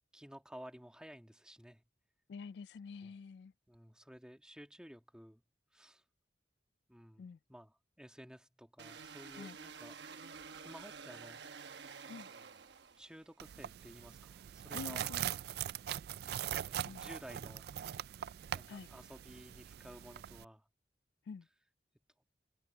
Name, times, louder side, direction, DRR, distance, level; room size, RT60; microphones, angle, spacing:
voice 1, 0.1-1.8 3.0-3.2 3.7-5.4 5.7-6.0 6.9-10.0 10.6-11.4 13.0-15.0 16.6-17.7 18.5-20.7, equal, 5° right, 1.7 m, -54 dB
voice 2, 2.3-3.5 7.2-7.4 9.4-9.6 12.1-12.3 14.7-15.3 16.8-17.0 18.7-18.9 21.3-21.5, left 5 dB, 70° left, 0.3 m, -47 dB
sound 1, 8.8-13.3, right 5 dB, 80° right, 1.1 m, -50 dB
sound 2, 13.4-20.4, right 10 dB, 65° right, 0.3 m, -42 dB
head